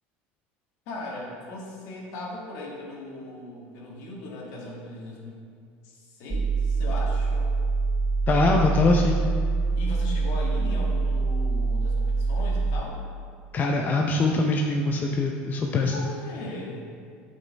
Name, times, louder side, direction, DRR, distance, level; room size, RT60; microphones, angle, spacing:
voice 1, 0.8-5.4 5.8-7.5 9.8-13.0 15.9-16.9, left 2 dB, 70° left, -3 dB, 1.7 m, -38 dB
sound 1, 6.3-12.8, right 3 dB, 25° right, 0.4 m, -25 dB
voice 2, 8.3-9.2 13.5-15.9, left 2 dB, 35° left, 1 dB, 0.6 m, -23 dB
8.8 x 5.3 x 3.4 m, 2.1 s
supercardioid pair, 100°, 5 cm